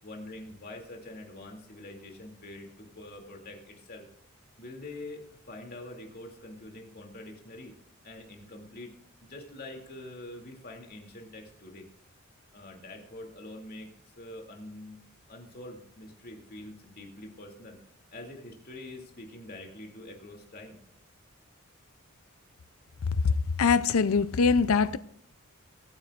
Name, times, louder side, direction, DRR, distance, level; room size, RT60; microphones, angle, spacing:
voice 1, 0.0-4.0 4.6-5.2 5.5-7.7 8.0-9.0 9.2-11.9 12.5-15.0 15.3-17.8 18.1-20.8, left 1 dB, 45° left, 2.7 m, -45 dB
voice 2, 23.2-25.0, left 5 dB, 90° left, 0.5 m, -23 dB
23.5 x 9.6 x 2.5 m
head